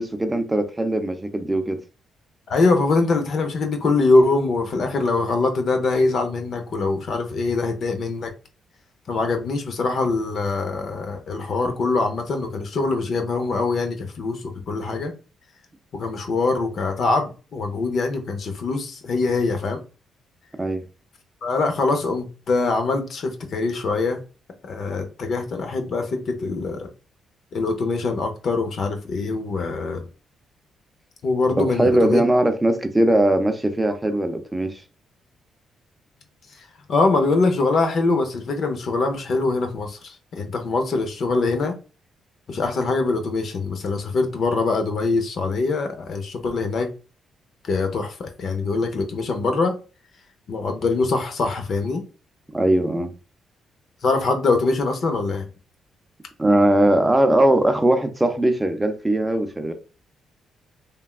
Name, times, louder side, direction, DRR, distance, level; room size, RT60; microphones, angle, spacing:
voice 1, 0.0-1.8 20.6-20.8 31.6-34.8 52.5-53.1 56.4-59.7, right 1 dB, 15° right, 0.5 m, -20 dB
voice 2, 2.5-8.3 9.1-15.1 15.9-19.8 21.4-24.2 24.6-26.9 27.5-30.0 31.2-32.2 36.9-41.7 42.5-46.9 47.6-49.7 50.5-52.0 54.0-55.5, left 3 dB, 60° left, 0.7 m, -23 dB
3.4 x 2.2 x 2.3 m
cardioid pair, 70°, 0 cm